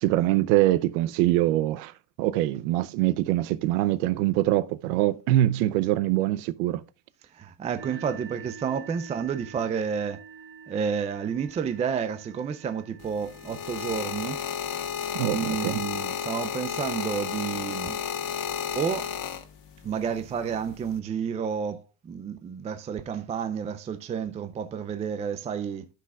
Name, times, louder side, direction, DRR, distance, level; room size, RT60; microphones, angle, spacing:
voice 1, 0.0-6.8 15.1-15.8, right 15 dB, 75° right, 0.8 m, -24 dB
voice 2, 7.3-10.2 10.7-14.4 14.7-14.8 15.3-18.0 18.7-19.1 19.8-25.9, right 7 dB, 15° right, 0.4 m, -30 dB
sound 1, 7.7-19.3, right 7 dB, 80° left, 2.6 m, -49 dB
sound 2, 13.0-19.8 20.7-21.0, left 8 dB, 50° left, 1.5 m, -32 dB
13.0 x 5.9 x 2.3 m
supercardioid pair, 135°, 44 cm